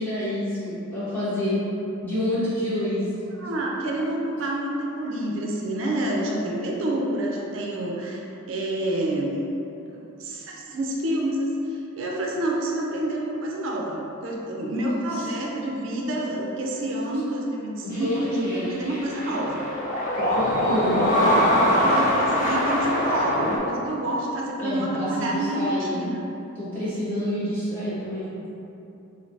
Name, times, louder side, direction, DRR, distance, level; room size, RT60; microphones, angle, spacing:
voice 1, 0.0-1.6 2.0-3.0 17.8-18.8 20.2-21.1 24.6-26.1 26.5-28.3, left 1 dB, 10° left, -14 dB, 1.1 m, -28 dB
voice 2, 3.4-9.4 9.9-19.7 21.7-26.2, right 1 dB, 60° right, -2 dB, 0.4 m, -28 dB
sound 1, 17.9-23.6, equal, 35° left, 0.5 m, -22 dB
3.2 x 2.7 x 2.6 m, 2.9 s
head